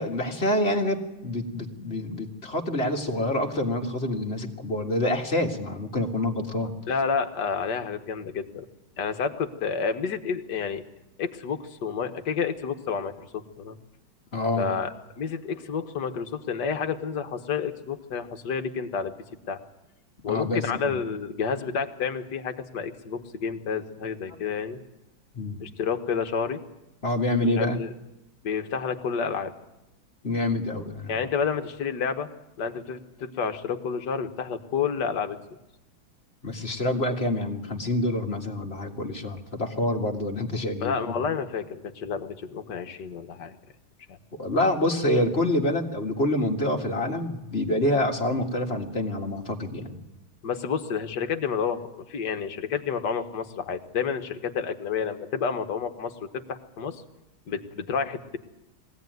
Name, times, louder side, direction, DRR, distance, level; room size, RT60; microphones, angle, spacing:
voice 1, 0.0-6.8 14.3-14.7 20.3-21.0 25.3-25.6 27.0-27.8 30.2-31.2 36.4-41.1 44.3-50.0, left 1 dB, 30° left, 2 dB, 2.0 m, -27 dB
voice 2, 6.9-8.7 9.0-10.8 11.2-13.8 14.6-14.9 15.2-19.1 19.5-19.6 20.2-24.8 25.6-26.6 27.6-27.9 28.4-29.5 31.1-32.3 32.6-35.4 40.8-43.6 44.1-44.2 50.4-56.1 56.5-57.0 57.5-58.4, left 6 dB, 55° left, 7 dB, 1.8 m, -30 dB
22.5 x 16.5 x 9.3 m, 0.96 s
omnidirectional pair, 2.3 m